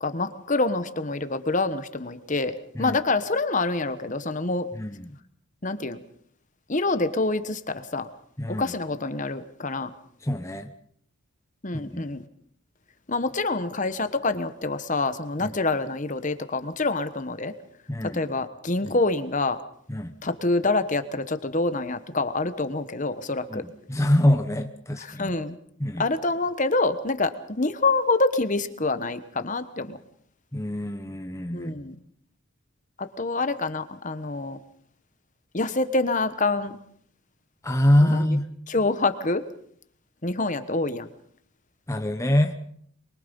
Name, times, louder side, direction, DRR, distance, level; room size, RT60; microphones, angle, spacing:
voice 1, 0.0-4.7 5.6-6.0 6.7-8.1 8.5-9.9 11.6-12.2 13.1-17.5 18.1-19.6 20.2-23.6 25.1-25.6 26.0-30.0 31.5-31.9 33.0-34.6 35.5-36.8 38.0-38.3 38.7-39.4 40.2-41.1, left 3 dB, 35° left, 11 dB, 1.2 m, -26 dB
voice 2, 4.7-5.2 8.4-8.7 10.2-10.7 11.8-12.1 15.4-15.5 17.9-18.2 18.8-19.0 19.9-20.1 23.5-25.3 25.8-26.0 30.5-31.7 37.6-38.4 41.9-42.5, left 1 dB, 15° left, 5 dB, 1.0 m, -24 dB
24.5 x 23.0 x 5.4 m, 0.63 s
head